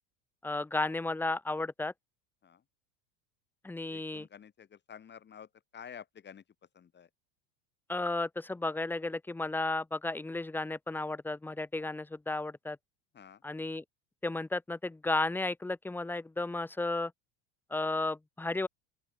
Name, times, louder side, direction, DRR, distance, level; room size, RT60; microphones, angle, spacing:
voice 1, 0.4-1.9 3.6-4.3 7.9-12.8 13.4-13.8 14.2-17.1 17.7-18.7, left 2 dB, 5° left, 1.0 m, -33 dB
voice 2, 3.9-6.4 6.7-7.1 13.1-13.4, left 8 dB, 25° left, 6.2 m, -50 dB
open air
supercardioid pair, 140°, 40 cm